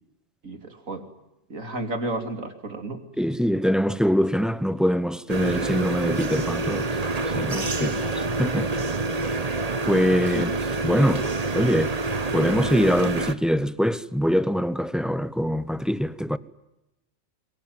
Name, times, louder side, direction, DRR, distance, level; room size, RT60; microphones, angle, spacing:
voice 1, 0.4-1.1 1.5-3.0 7.8-8.0 10.3-10.5, right 2 dB, 75° right, 3.4 m, -32 dB
voice 2, 3.2-6.9 7.4-7.9 8.4-8.7 9.9-10.5 10.8-11.3 11.5-12.0 12.3-16.4, equal, ahead, 0.6 m, -23 dB
sound 1, 5.3-13.3, right 3 dB, 30° right, 1.2 m, -27 dB
23.0 x 23.0 x 9.4 m
omnidirectional pair, 1.4 m